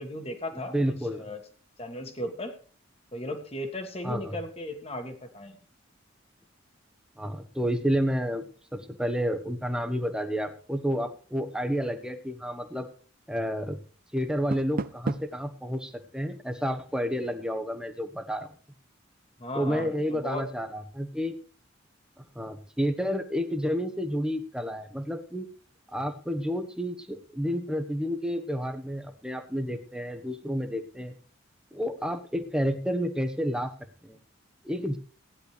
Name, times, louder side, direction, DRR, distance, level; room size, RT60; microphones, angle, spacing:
voice 1, 0.0-0.8 1.1-1.4 1.8-2.5 3.1-5.6 19.4-20.4, left 1 dB, 30° left, 6 dB, 1.7 m, -36 dB
voice 2, 0.7-1.3 4.0-4.4 7.2-8.5 8.7-12.9 13.3-13.8 14.1-18.5 19.5-21.4 22.2-25.5 25.9-31.1 31.7-33.7 34.0-34.2 34.6-35.0, equal, 5° right, 6 dB, 1.1 m, -30 dB
Door, 14.2-15.5, right 3 dB, 45° right, 0.5 m, -35 dB
16.0 x 10.5 x 3.3 m, 0.40 s
head